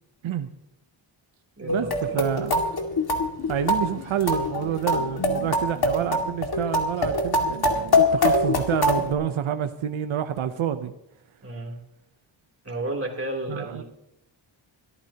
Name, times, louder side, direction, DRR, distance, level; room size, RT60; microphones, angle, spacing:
voice 1, 1.6-2.2 11.4-11.8 12.6-13.8, right 1 dB, 30° right, 0 dB, 3.2 m, -32 dB
sound 1, 1.7-9.1, left 2 dB, 55° left, 2.2 m, -24 dB
voice 2, 2.1-2.6 3.5-10.9 13.5-13.8, right 9 dB, 90° right, 9 dB, 0.8 m, -28 dB
23.0 x 14.0 x 2.9 m, 0.79 s
wide cardioid pair, 115°, 46 cm